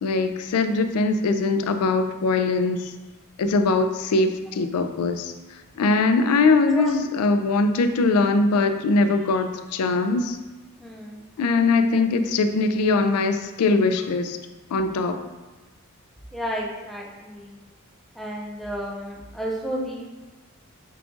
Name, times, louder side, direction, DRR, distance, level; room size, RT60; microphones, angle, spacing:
voice 1, 0.0-2.9 3.4-5.3 5.8-10.4 11.4-14.4 14.7-15.2, left 3 dB, 80° left, 8 dB, 0.4 m, -21 dB
voice 2, 10.8-11.2 16.3-17.5 18.2-20.1, equal, ahead, -2 dB, 0.5 m, -32 dB
4.8 x 2.4 x 3.7 m, 1.2 s
head